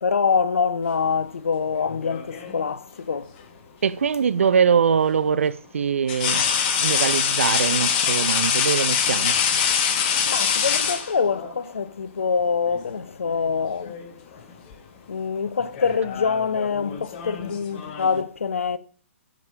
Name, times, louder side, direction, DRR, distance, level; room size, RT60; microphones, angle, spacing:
voice 1, 0.0-3.3 10.3-14.0 15.1-18.8, left 5 dB, 75° left, 0.7 m, -25 dB
sound 1, 1.8-2.6 4.4-4.6 6.1-11.5 12.7-12.9 13.3-14.1 14.4-14.7 15.6-18.2, left 7 dB, 35° left, 1.5 m, -24 dB
voice 2, 3.8-6.5 6.8-9.3, right 7 dB, 70° right, 0.6 m, -22 dB
11.5 x 5.3 x 5.0 m
figure-of-eight pair, 130°, 7 cm